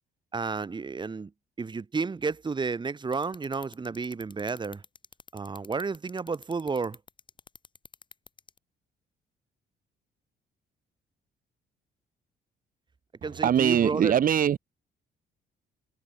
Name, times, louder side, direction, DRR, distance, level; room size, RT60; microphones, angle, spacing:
voice 1, 0.3-1.3 1.6-4.8 5.3-7.0 13.2-14.1, right 4 dB, 25° right, 6.2 m, -31 dB
sound 1, 3.1-8.6, left 4 dB, 25° left, 3.6 m, -48 dB
voice 2, 13.4-14.6, right 9 dB, 50° right, 2.2 m, -22 dB
open air
cardioid pair, 130°, 19 cm